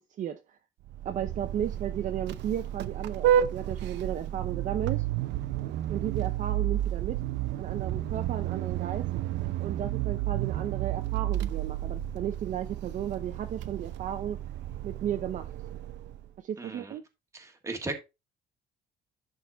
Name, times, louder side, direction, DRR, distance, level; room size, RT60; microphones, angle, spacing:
Vehicle horn car horn honking, 0.9-16.3, right 12 dB, 75° right, 0.7 m, -31 dB
voice 1, 1.0-5.1 5.9-7.2 7.6-9.1 9.6-14.4 14.8-15.5 16.4-17.0, right 10 dB, 45° right, 0.7 m, -34 dB
voice 2, 16.6-16.9 17.3-18.0, right 2 dB, 15° right, 1.5 m, -36 dB
11.0 x 3.9 x 4.0 m
cardioid pair, 175°, 18 cm